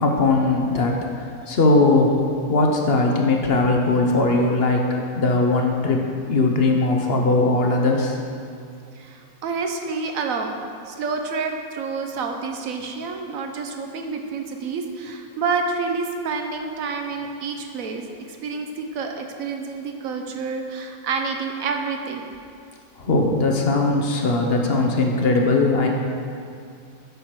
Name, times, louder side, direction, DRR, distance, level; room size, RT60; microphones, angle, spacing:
voice 1, 0.0-2.1 2.5-6.0 6.3-8.2 23.0-25.9, left 2 dB, 50° left, 1 dB, 0.8 m, -19 dB
voice 2, 9.0-10.6 10.9-18.0 18.3-22.2, right 4 dB, 70° right, 4 dB, 1.1 m, -28 dB
8.1 x 4.7 x 6.0 m, 2.4 s
omnidirectional pair, 1.6 m